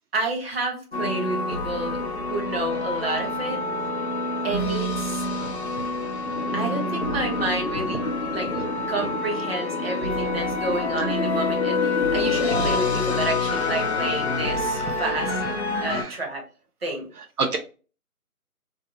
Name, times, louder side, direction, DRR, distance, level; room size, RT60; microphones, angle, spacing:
voice 1, 0.1-2.0 2.3-3.6 4.4-5.3 6.5-8.0 8.3-8.5 8.9-15.3 15.8-16.4 16.8-17.1, right 2 dB, 40° right, -1 dB, 0.8 m, -30 dB
sound 1, 0.9-16.0, left 3 dB, 50° left, 0.5 m, -27 dB
Wind, 6.4-15.1, left 3 dB, 80° left, 0.7 m, -34 dB
voice 2, 15.1-15.5 15.8-16.2 17.4-17.6, right 4 dB, 80° right, 3 dB, 0.8 m, -30 dB
2.6 x 2.3 x 2.5 m, 0.35 s
figure-of-eight pair, 165°, 45 cm